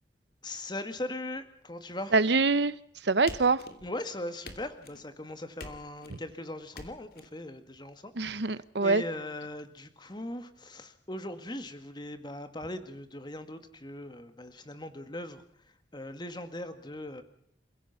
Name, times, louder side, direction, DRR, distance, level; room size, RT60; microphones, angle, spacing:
voice 1, 0.4-2.1 3.8-8.1 8.4-15.4 15.9-17.2, left 1 dB, 25° left, 9 dB, 1.8 m, -39 dB
voice 2, 2.1-2.7 3.1-3.6 6.1-6.2 8.2-9.0, right 3 dB, 70° right, 16 dB, 0.9 m, -24 dB
sound 1, 3.3-4.0 4.4-5.1 5.6-6.2 6.7-7.3, left 2 dB, 55° left, 2.7 m, -46 dB
29.0 x 16.0 x 5.8 m, 0.71 s
head